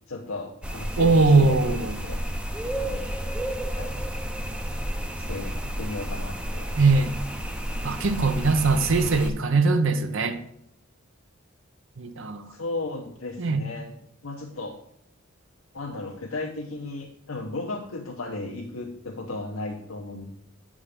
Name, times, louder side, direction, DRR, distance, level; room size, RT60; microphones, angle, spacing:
voice 1, 0.1-2.2 2.7-3.1 3.7-3.9 5.1-6.8 12.5-13.9 14.2-14.8 15.7-20.3, left 2 dB, 80° left, 0.9 m, -35 dB
sound 1, 0.6-9.3, equal, 5° right, 0.6 m, -31 dB
voice 2, 1.0-2.0 6.8-7.1 7.8-10.4 12.0-12.5 13.4-13.7, right 3 dB, 65° right, 0.7 m, -21 dB
8.7 x 3.7 x 6.5 m
head